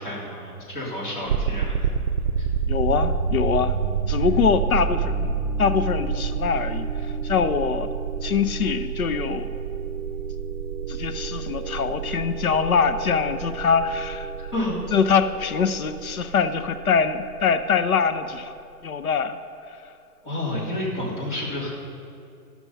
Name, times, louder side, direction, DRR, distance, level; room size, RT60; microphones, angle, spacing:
voice 1, 0.0-1.9 2.4-2.5 14.5-14.8 20.2-21.7, left 1 dB, 30° left, -6 dB, 2.8 m, -30 dB
sound 1, 1.3-18.2, right 6 dB, 60° right, 0.7 m, -28 dB
voice 2, 2.7-3.8 4.1-5.3 5.6-7.9 8.2-9.5 10.9-14.3 14.9-18.5 18.8-19.4, left 6 dB, 65° left, 10 dB, 0.7 m, -23 dB
12.5 x 6.1 x 5.4 m, 2.5 s
hypercardioid pair, 170°, 46 cm